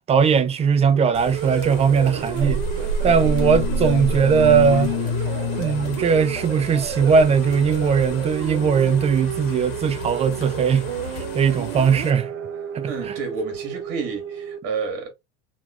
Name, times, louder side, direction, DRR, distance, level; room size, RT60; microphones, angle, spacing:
voice 1, 0.1-2.6 3.0-4.9 5.6-12.3 12.7-12.9, right 6 dB, 20° right, 0.4 m, -19 dB
sound 1, 0.8-14.6, right 10 dB, 70° right, 0.6 m, -32 dB
sound 2, 1.1-12.1, right 1 dB, 75° left, 1.0 m, -31 dB
sound 3, 3.1-8.2, left 10 dB, 55° left, 0.6 m, -29 dB
voice 2, 12.9-15.1, right 4 dB, 50° right, 1.4 m, -30 dB
3.0 x 2.5 x 2.4 m
supercardioid pair, 100°, 31 cm